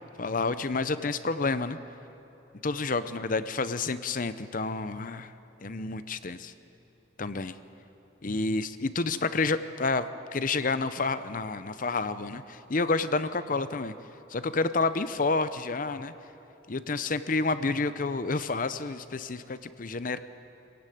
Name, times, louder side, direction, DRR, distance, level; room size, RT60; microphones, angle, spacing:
voice 1, 0.2-1.8 2.6-5.3 5.6-6.5 7.2-7.6 8.2-13.9 14.3-16.1 16.7-20.2, left 3 dB, 45° left, 12 dB, 0.7 m, -29 dB
25.0 x 16.0 x 9.3 m, 3.0 s
head